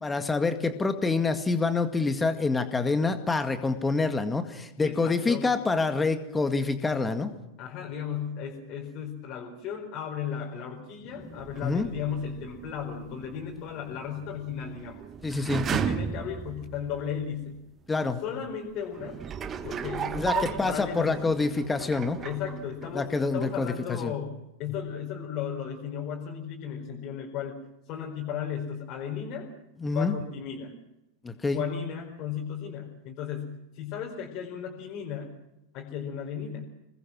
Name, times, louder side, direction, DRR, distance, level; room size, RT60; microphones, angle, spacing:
voice 1, 0.0-7.3 9.0-9.1 11.6-11.9 15.2-15.7 17.9-18.2 20.1-22.2 22.9-23.7 24.0-24.1 29.8-30.1 31.2-31.6, left 3 dB, 10° left, 9 dB, 2.0 m, -26 dB
voice 2, 4.8-5.5 7.6-15.0 15.7-17.6 18.2-19.2 19.6-21.3 22.2-27.6 27.8-29.5 29.9-30.8 31.5-35.3 35.7-36.6, left 8 dB, 40° left, -1 dB, 4.6 m, -35 dB
sound 1, 11.2-17.3 17.9-18.0 18.9-23.2 23.4-23.5, right 7 dB, 25° right, 1.5 m, -36 dB
27.5 x 20.5 x 6.3 m, 0.90 s
figure-of-eight pair, 90°, 0 cm